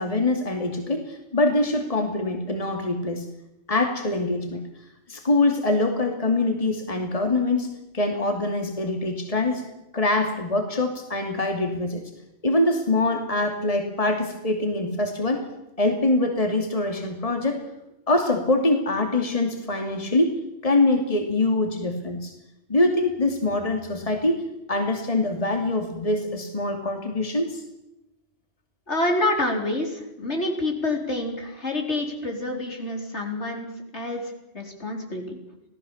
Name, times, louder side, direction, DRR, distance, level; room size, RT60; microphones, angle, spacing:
voice 1, 0.0-3.3 3.7-4.6 5.1-7.7 7.9-9.6 9.9-12.0 12.4-15.5 15.8-17.6 18.1-22.3 22.7-27.6, left 2 dB, 30° left, 4 dB, 2.7 m, -24 dB
voice 2, 28.9-35.4, left 2 dB, 70° left, 2 dB, 4.4 m, -27 dB
27.0 x 17.5 x 7.2 m, 0.89 s
omnidirectional pair, 1.2 m